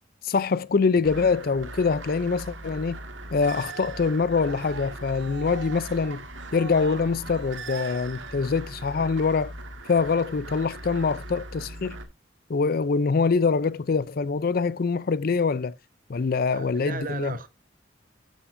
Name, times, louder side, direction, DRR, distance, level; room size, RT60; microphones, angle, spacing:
voice 1, 0.2-3.0 3.3-6.2 6.5-9.5 9.9-12.0 12.5-15.7 16.1-17.3, left 4 dB, 50° left, 0.5 m, -24 dB
sound 1, 1.0-12.0, right 2 dB, 85° right, 1.8 m, -40 dB
Cheering, 3.5-8.9, right 4 dB, 65° right, 0.9 m, -44 dB
voice 2, 16.5-17.5, right 4 dB, 45° right, 1.2 m, -36 dB
12.0 x 7.9 x 2.6 m
head